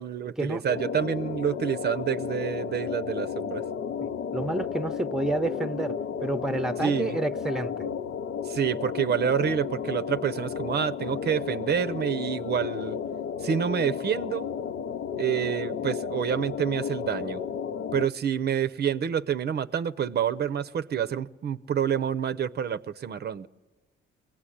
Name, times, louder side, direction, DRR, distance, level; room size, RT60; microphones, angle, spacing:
voice 1, 0.0-3.6 6.8-7.2 8.4-13.0 13.4-14.5 15.2-17.4 17.9-23.5, right 8 dB, 55° right, 0.7 m, -28 dB
sound 1, 0.7-18.1, left 7 dB, 65° left, 0.7 m, -33 dB
voice 2, 4.0-5.9 6.2-7.9, right 2 dB, ahead, 0.8 m, -29 dB
22.5 x 17.5 x 10.0 m
cardioid pair, 90°, 20 cm